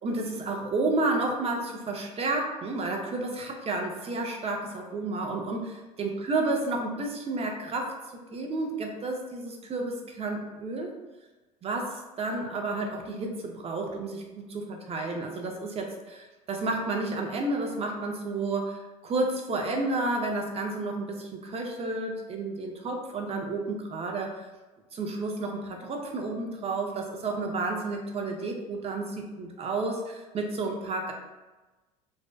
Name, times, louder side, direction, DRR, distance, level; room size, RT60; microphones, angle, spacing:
voice 1, 0.0-8.0 8.3-10.9 11.6-24.4 24.9-31.1, right 2 dB, 35° right, 2 dB, 0.5 m, -31 dB
2.5 x 2.2 x 2.2 m, 1.2 s
hypercardioid pair, 75°, 18 cm